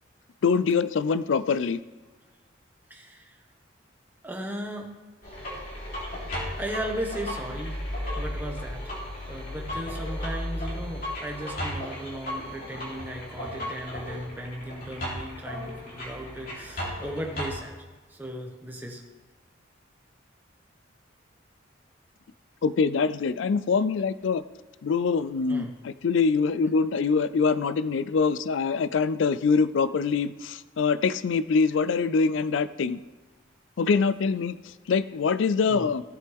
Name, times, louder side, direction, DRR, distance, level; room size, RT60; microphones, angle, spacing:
voice 1, 0.4-1.8 22.6-24.4 24.8-33.0 33.8-36.0, left 5 dB, 75° left, 15 dB, 0.4 m, -24 dB
voice 2, 2.9-3.4 4.2-4.9 6.6-7.8 8.1-8.9 9.3-17.7 18.1-19.0 25.5-25.7 35.7-35.9, right 1 dB, 10° right, 1 dB, 1.4 m, -36 dB
sound 1, 5.2-17.5, left 1 dB, 45° left, 3.5 m, -35 dB
16.5 x 7.6 x 3.5 m, 1.3 s
head